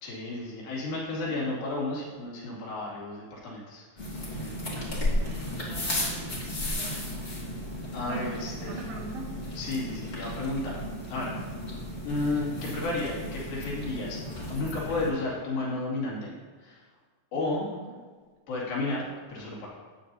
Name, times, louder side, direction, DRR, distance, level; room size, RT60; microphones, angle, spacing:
voice 1, 0.0-4.2 7.1-7.2 7.9-8.9 9.5-10.8 11.1-11.3 12.0-14.2 14.5-16.9 17.3-17.7 18.5-19.7, left 2 dB, 80° left, -5 dB, 4.3 m, -32 dB
sound 1, 4.0-15.1, left 1 dB, 25° left, 1.5 m, -34 dB
voice 2, 4.2-7.6 8.1-8.3 8.7-9.3 17.4-17.5, right 5 dB, 80° right, -1 dB, 2.7 m, -42 dB
13.5 x 9.2 x 2.7 m, 1.5 s
omnidirectional pair, 4.1 m